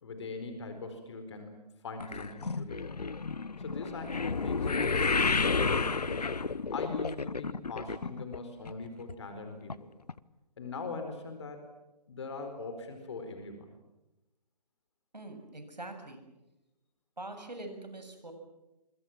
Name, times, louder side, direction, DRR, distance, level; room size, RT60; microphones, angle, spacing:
voice 1, 0.0-2.9 3.6-6.3 6.7-9.9 10.6-11.6 12.1-13.7, left 3 dB, 40° left, 7 dB, 4.6 m, -41 dB
sound 1, 2.0-8.4 8.7-9.1 9.7-9.8 10.1-10.2, left 4 dB, 70° left, 1.1 m, -31 dB
voice 2, 15.1-16.2 17.2-18.3, right 2 dB, 80° right, 6 dB, 7.3 m, -43 dB
27.5 x 24.5 x 7.5 m, 0.99 s
figure-of-eight pair, 145°, 21 cm